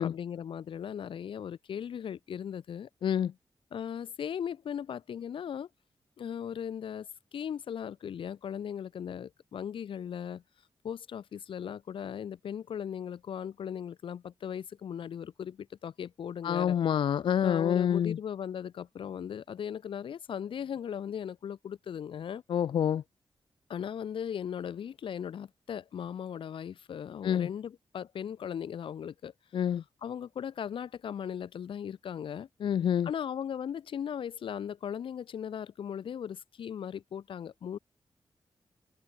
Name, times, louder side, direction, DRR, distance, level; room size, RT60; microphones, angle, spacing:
voice 1, 0.0-2.9 3.7-5.7 6.2-10.4 10.8-16.8 17.4-22.4 23.7-29.3 30.0-32.5 33.0-37.8, left 8 dB, 90° left, 1.9 m, -38 dB
voice 2, 3.0-3.3 16.4-18.2 22.5-23.0 27.2-27.5 29.5-29.8 32.6-33.1, left 9 dB, 75° left, 0.5 m, -27 dB
wide cardioid pair, 155°, 9 cm